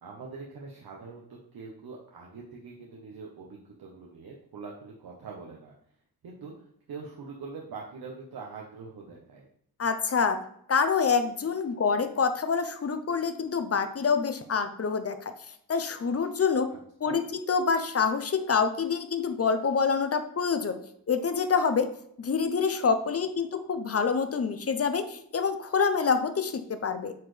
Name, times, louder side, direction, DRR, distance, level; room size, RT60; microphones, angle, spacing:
voice 1, 0.0-5.7 6.2-9.5 16.7-17.2, right 4 dB, 80° right, -1 dB, 1.1 m, -44 dB
voice 2, 9.8-10.4 10.7-15.3 15.7-16.7 17.0-20.8 21.1-21.9 22.2-27.1, left 5 dB, 40° left, 9 dB, 0.8 m, -26 dB
8.5 x 4.3 x 3.3 m, 0.67 s
cardioid pair, 95°, 36 cm